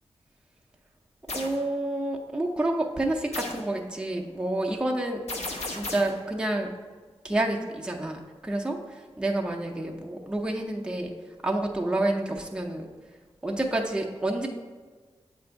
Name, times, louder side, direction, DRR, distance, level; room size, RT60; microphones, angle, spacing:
sound 1, 1.3-1.6 3.3-3.7 5.3-6.2, left 2 dB, 80° left, 1.0 m, -34 dB
voice 1, 1.3-5.2 5.7-6.7 7.2-11.1 11.4-12.9 13.4-14.5, right 1 dB, 10° right, 0 dB, 0.7 m, -29 dB
7.6 x 2.6 x 5.7 m, 1.4 s
cardioid pair, 60°, 11 cm